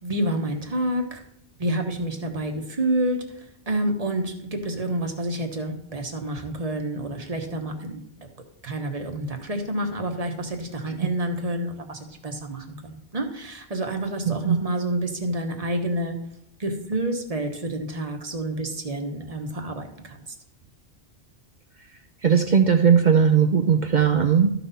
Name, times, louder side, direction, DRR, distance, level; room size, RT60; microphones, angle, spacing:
voice 1, 0.0-1.2 1.6-8.0 8.6-16.2 16.6-20.3, right 1 dB, 35° right, 4 dB, 1.2 m, -28 dB
voice 2, 14.3-14.6 22.2-24.5, right 7 dB, 50° right, 6 dB, 0.7 m, -18 dB
13.0 x 5.8 x 4.1 m, 0.76 s
omnidirectional pair, 1.1 m